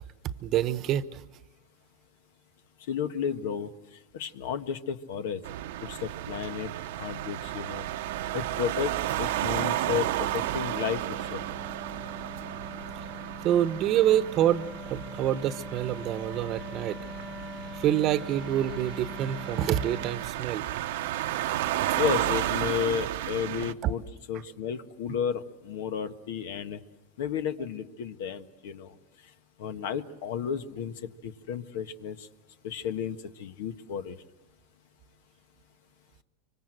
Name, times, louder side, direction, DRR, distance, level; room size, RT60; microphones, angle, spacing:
voice 1, 0.4-1.2 13.4-17.0 17.7-20.6 23.8-24.0, right 11 dB, 40° right, 13 dB, 1.0 m, -26 dB
voice 2, 2.9-3.7 4.1-5.4 5.8-6.7 7.0-7.9 8.3-8.9 9.2-11.0 11.3-11.5 22.0-26.8 27.2-28.9 29.6-32.3 32.6-34.1, left 8 dB, 75° left, 9 dB, 1.4 m, -32 dB
sound 1, 5.4-23.7, right 14 dB, 75° right, 0.9 m, -33 dB
Wind instrument woodwind instrument, 7.4-20.3, left 1 dB, 5° left, 0.8 m, -44 dB
25.0 x 25.0 x 7.8 m, 1.1 s
supercardioid pair, 130°, 0 cm